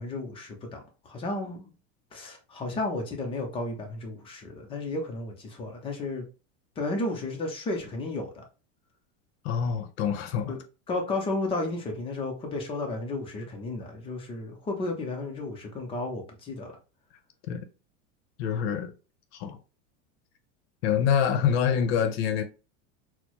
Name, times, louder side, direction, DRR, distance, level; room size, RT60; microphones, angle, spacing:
voice 1, 0.0-1.7 2.1-6.3 6.8-8.4 10.5-10.6 10.9-16.7, left 2 dB, 15° left, 0.4 m, -33 dB
voice 2, 9.4-10.5 17.5-17.6 18.4-18.9 19.4-19.6 20.8-22.4, left 8 dB, 55° left, 0.7 m, -25 dB
4.3 x 2.0 x 2.9 m
supercardioid pair, 155°, 38 cm